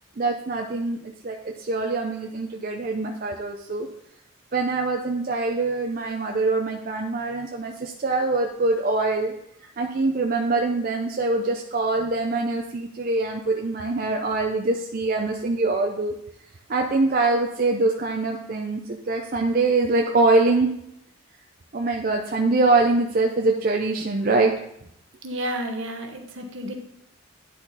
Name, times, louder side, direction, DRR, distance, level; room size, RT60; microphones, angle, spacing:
voice 1, 0.2-3.9 4.5-9.3 9.8-16.1 16.7-18.8 19.1-20.7 21.7-24.5, right 3 dB, 45° right, 1 dB, 0.5 m, -23 dB
voice 2, 25.2-26.7, equal, 70° right, 3 dB, 1.1 m, -31 dB
10.0 x 4.3 x 4.0 m, 0.76 s
head